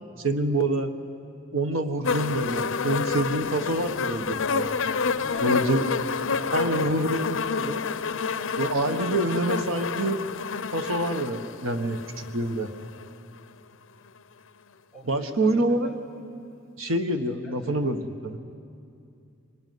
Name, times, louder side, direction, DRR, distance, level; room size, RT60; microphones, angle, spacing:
voice 1, 0.2-0.9 1.5-4.7 5.4-5.8 6.5-7.8 8.6-10.2 10.7-12.7 15.1-15.9 16.8-18.4, right 1 dB, 90° right, 7 dB, 1.5 m, -26 dB
sound 1, 2.0-13.1 14.1-14.2, left 5 dB, 75° left, 0.7 m, -29 dB
voice 2, 5.1-6.1 6.4-7.0 14.9-15.9 17.4-17.9, left 1 dB, ahead, -2 dB, 6.2 m, -44 dB
24.5 x 21.0 x 9.5 m, 2.5 s
head